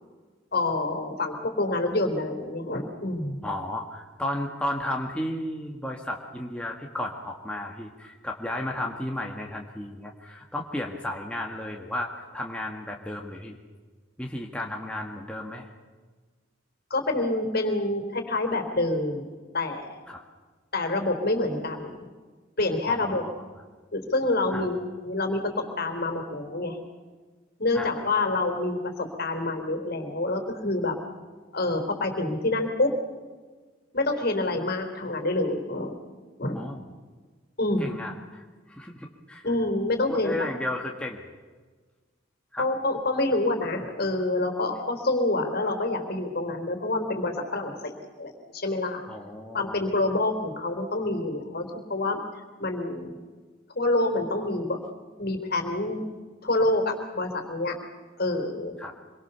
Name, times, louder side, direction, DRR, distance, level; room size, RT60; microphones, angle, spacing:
voice 1, 0.5-3.4 16.9-20.0 20.7-21.9 22.6-23.2 23.9-26.8 27.6-31.0 31.5-32.9 33.9-36.0 36.4-36.6 37.6-37.9 39.4-40.5 42.6-47.9 48.2-49.0 49.5-52.2 52.6-53.1 53.8-54.8 55.2-56.0 56.4-57.8 58.2-58.7, left 2 dB, 50° left, 5 dB, 3.8 m, -27 dB
voice 2, 3.4-13.6 14.2-15.7 20.1-20.2 22.9-23.4 24.5-24.7 27.7-27.9 36.6-36.8 37.8-39.5 40.1-41.2 42.5-42.7 49.1-49.9 58.8-58.9, left 1 dB, 5° left, 0 dB, 1.8 m, -34 dB
26.0 x 23.0 x 7.0 m, 1.4 s
head